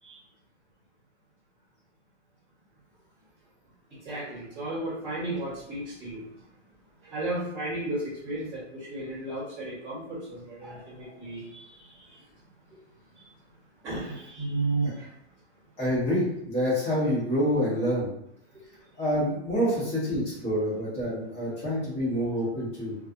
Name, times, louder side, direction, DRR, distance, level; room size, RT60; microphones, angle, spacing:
voice 1, 3.9-6.5 7.0-12.2 13.1-13.3 13.8-15.1 18.5-18.6, right 2 dB, 5° right, -17 dB, 1.1 m, -34 dB
voice 2, 15.8-18.1 19.0-22.9, equal, 15° left, -8 dB, 1.1 m, -27 dB
2.5 x 2.4 x 2.4 m, 0.75 s
hypercardioid pair, 150°, 34 cm